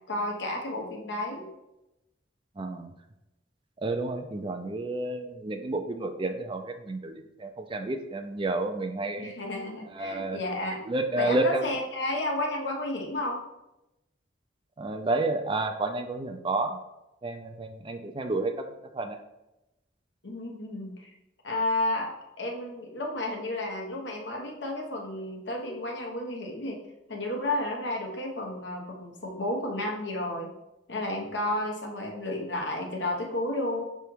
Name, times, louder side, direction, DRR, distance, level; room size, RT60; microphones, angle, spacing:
voice 1, 0.1-1.5 9.2-10.8 11.1-13.4 20.2-21.1 21.4-26.8 27.1-30.5 30.9-33.8, left 1 dB, 80° left, 0 dB, 1.2 m, -32 dB
voice 2, 2.6-2.9 3.8-9.3 10.0-10.4 10.9-11.7 14.8-16.8 17.2-18.5 18.9-19.2, right 2 dB, 30° right, 6 dB, 0.5 m, -30 dB
6.1 x 3.4 x 4.6 m, 0.93 s
head